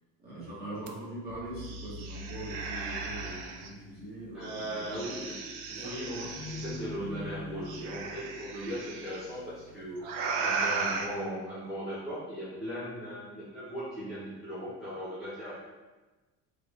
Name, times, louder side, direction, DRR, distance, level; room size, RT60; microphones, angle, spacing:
voice 1, 0.2-5.2 5.7-6.3, right 1 dB, 30° right, -9 dB, 1.3 m, -42 dB
sound 1, 0.9-1.0 1.3-3.7 4.4-6.8 7.7-9.2 10.0-11.1, right 4 dB, 80° right, 0.5 m, -36 dB
sound 2, 1.6-11.2, left 3 dB, 30° left, 0.8 m, -48 dB
voice 2, 4.3-5.5 5.7-10.1 10.4-15.6, equal, ahead, -13 dB, 1.0 m, -38 dB
3.5 x 2.5 x 3.4 m, 1.2 s
cardioid pair, 155°, 32 cm